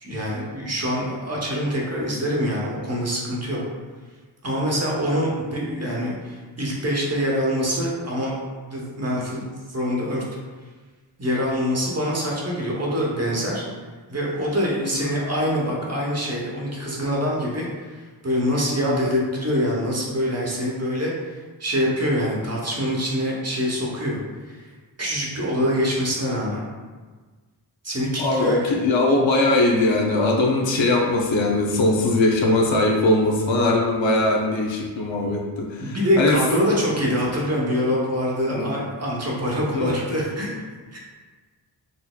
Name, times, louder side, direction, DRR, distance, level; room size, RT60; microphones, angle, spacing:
voice 1, 0.0-3.6 4.4-8.3 8.7-10.2 11.2-13.6 14.1-24.2 24.5-24.7 25.0-26.6 27.8-28.8 35.8-40.5 40.9-41.0, equal, 35° right, -4 dB, 0.9 m, -25 dB
voice 2, 28.2-36.4 38.5-38.7 39.7-40.0, left 2 dB, 75° left, -1 dB, 0.7 m, -21 dB
4.1 x 2.7 x 2.2 m, 1.4 s
cardioid pair, 55°, 46 cm